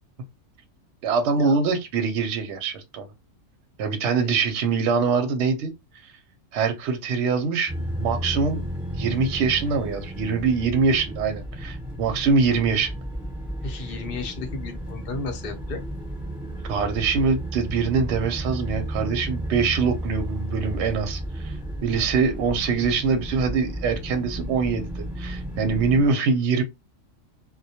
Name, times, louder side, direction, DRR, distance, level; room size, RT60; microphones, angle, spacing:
voice 1, 1.0-3.1 3.8-5.7 6.5-8.6 8.9-13.0 16.6-21.5 21.8-26.6, right 5 dB, 65° right, 0.8 m, -24 dB
sound 1, 7.7-26.1, equal, ahead, 1.0 m, -33 dB
voice 2, 13.6-15.8, left 4 dB, 55° left, 0.7 m, -34 dB
2.2 x 2.1 x 2.7 m
omnidirectional pair, 1.4 m